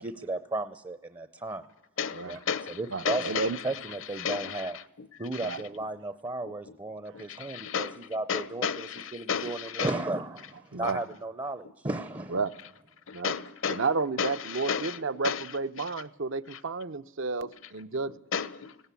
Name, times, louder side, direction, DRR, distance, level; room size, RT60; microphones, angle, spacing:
voice 1, 0.0-1.6 2.2-2.4 2.7-3.3 3.6-4.8 5.2-12.4, right 2 dB, 20° right, 0.6 m, -34 dB
voice 2, 2.0-2.8 3.0-3.6 4.1-5.1 5.3-5.6 6.5-6.6 7.1-8.0 8.3-9.9 13.1-13.9 14.2-15.5 15.8-15.9 16.5-16.6 18.3-18.8, left 7 dB, 60° left, 0.9 m, -33 dB
voice 3, 2.9-3.6 5.4-5.6 10.7-11.0 12.3-12.5 13.1-13.3 13.7-18.1, right 4 dB, 60° right, 0.7 m, -31 dB
19.0 x 17.0 x 8.4 m
head